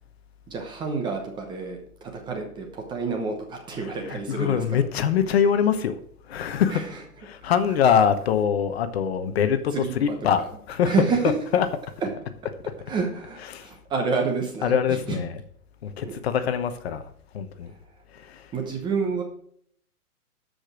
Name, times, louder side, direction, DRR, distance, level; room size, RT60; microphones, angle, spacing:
voice 1, 0.5-4.8 6.7-6.9 9.7-9.9 10.8-11.2 12.0-12.1 12.9-14.7 15.1-15.2 16.0-16.2 17.6-17.8 18.5-19.2, right 5 dB, 10° right, 0.9 m, -28 dB
voice 2, 3.7-6.0 6.2-6.9 7.2-11.8 12.4-12.7 13.3-13.7 14.6-15.4 15.8-17.0 17.3-17.7 18.1-18.5, left 8 dB, 40° left, 1.1 m, -24 dB
13.0 x 5.2 x 6.2 m
hypercardioid pair, 150°, 45 cm